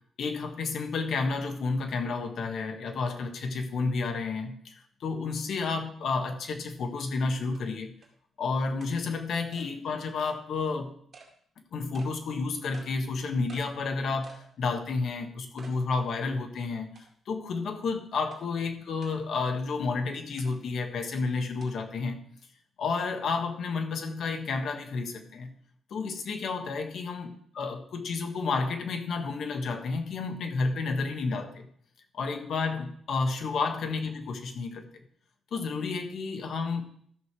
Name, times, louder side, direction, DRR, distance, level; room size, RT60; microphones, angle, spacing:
voice 1, 0.2-4.7 5.0-7.9 8.4-10.9 11.7-17.0 17.3-22.2 22.8-25.5 25.9-31.7 32.1-34.9 35.5-36.8, left 4 dB, 60° left, 5 dB, 1.5 m, -31 dB
sound 1, 6.8-6.9 7.5-7.6 8.0-8.1 8.8-8.9 9.5-9.7 10.2-10.4 11.1-11.3 11.9-12.1 12.7-12.9 13.5-13.7 14.2-14.5 14.9-15.0 15.6-15.8 16.2-16.3 17.0-17.3 18.3-18.4 19.0-19.2 20.4-20.5 21.6-21.7, right 4 dB, 40° right, 2.3 m, -51 dB
13.0 x 6.4 x 4.8 m, 0.64 s
cardioid pair, 150°, 0 cm